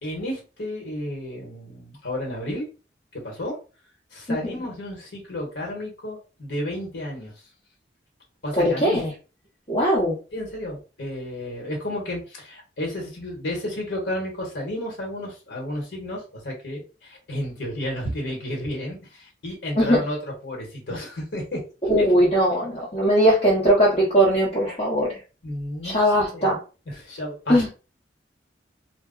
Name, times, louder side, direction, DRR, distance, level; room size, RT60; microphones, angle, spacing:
voice 1, 0.0-2.7 3.1-3.6 4.1-7.3 8.4-9.0 10.3-20.2 20.4-21.6 22.0-22.1 25.4-26.5 26.9-27.7, left 1 dB, 80° left, 0 dB, 1.1 m, -32 dB
voice 2, 8.5-9.1 9.7-10.2 19.8-20.0 21.9-25.2 25.8-26.6 27.5-27.7, equal, 35° left, -7 dB, 1.0 m, -20 dB
2.2 x 2.1 x 3.6 m, 0.34 s
head